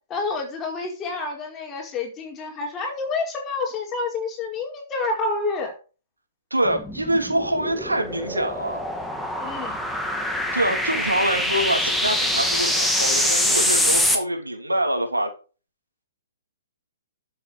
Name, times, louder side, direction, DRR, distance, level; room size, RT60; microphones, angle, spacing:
voice 1, 0.1-5.7 9.4-9.8, left 3 dB, 20° left, 4.7 m, -28 dB
voice 2, 6.5-8.8 10.5-15.3, right 1 dB, 90° right, 3.3 m, -25 dB
sound 1, 6.7-14.2, left 1 dB, ahead, 2.3 m, -24 dB
12.0 x 7.7 x 5.0 m
figure-of-eight pair, 125°, 0 cm